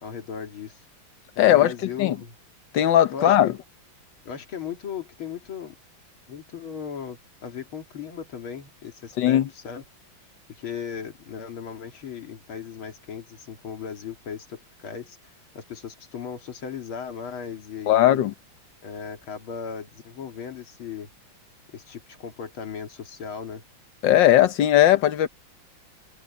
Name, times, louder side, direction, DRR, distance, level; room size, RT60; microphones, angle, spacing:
voice 1, 0.0-0.8 1.5-2.4 3.1-3.6 4.2-5.7 6.3-9.8 10.5-18.2 18.8-21.1 21.7-23.6, left 7 dB, 80° left, 3.0 m, -37 dB
voice 2, 1.4-1.7 2.0-2.2 2.7-3.5 9.2-9.5 17.9-18.3 24.0-25.3, left 12 dB, 65° left, 1.6 m, -18 dB
omnidirectional pair, 2.3 m